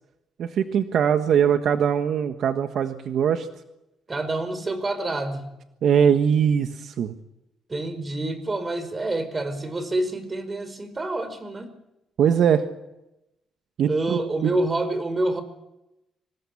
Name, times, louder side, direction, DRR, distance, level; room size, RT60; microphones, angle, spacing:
voice 1, 0.4-3.5 5.8-7.1 12.2-12.7 13.8-14.6, right 8 dB, 70° right, 8 dB, 1.4 m, -21 dB
voice 2, 4.1-5.5 7.7-11.7 13.9-15.4, right 2 dB, 30° right, 12 dB, 5.1 m, -27 dB
25.5 x 20.5 x 8.6 m, 0.94 s
cardioid pair, 75°, 0 cm